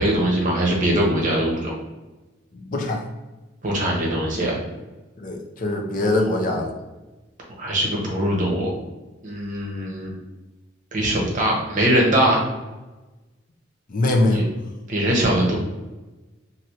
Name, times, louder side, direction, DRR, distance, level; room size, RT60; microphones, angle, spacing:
voice 1, 0.0-1.7 3.6-4.6 6.0-6.5 7.6-8.7 9.2-10.1 10.9-12.4 14.3-14.4 14.9-15.5, right 1 dB, 40° right, -2 dB, 0.8 m, -22 dB
voice 2, 2.5-3.0 5.2-6.7 13.9-14.4, left 2 dB, 45° left, 1 dB, 0.5 m, -22 dB
3.2 x 2.6 x 2.8 m, 1.1 s
head